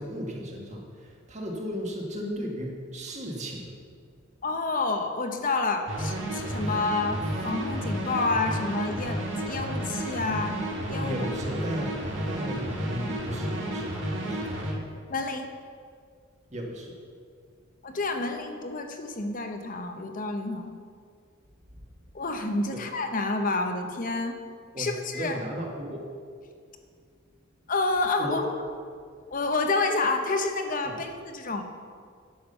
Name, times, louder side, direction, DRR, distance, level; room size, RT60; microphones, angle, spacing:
voice 1, 0.0-3.7 11.0-13.9 14.2-14.7 16.5-16.9 22.7-22.8 24.7-26.0 28.2-28.5 30.8-31.0, equal, 30° right, 0 dB, 1.5 m, -35 dB
voice 2, 4.4-10.6 10.9-11.1 15.1-15.5 17.8-20.7 22.1-24.4 24.8-25.4 27.7-28.4 29.3-31.6, left 3 dB, 40° left, 5 dB, 0.8 m, -29 dB
sound 1, 5.9-14.7, right 1 dB, 60° right, 1.8 m, -32 dB
10.5 x 7.3 x 5.4 m, 2.1 s
head